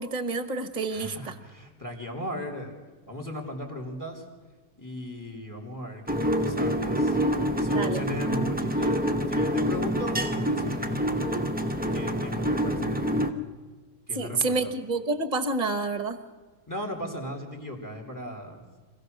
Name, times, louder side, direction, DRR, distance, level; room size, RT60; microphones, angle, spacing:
voice 1, 0.0-1.3 7.7-8.0 14.1-16.2, right 3 dB, 30° right, 9 dB, 1.2 m, -28 dB
voice 2, 0.9-2.7 3.1-4.2 4.8-7.2 7.6-11.2 11.9-13.2 14.1-14.7 16.7-18.6, left 1 dB, 10° left, 2 dB, 3.0 m, -37 dB
sound 1, 6.1-13.3, equal, 5° right, 0.8 m, -26 dB
26.0 x 16.5 x 6.7 m, 1.3 s
omnidirectional pair, 1.6 m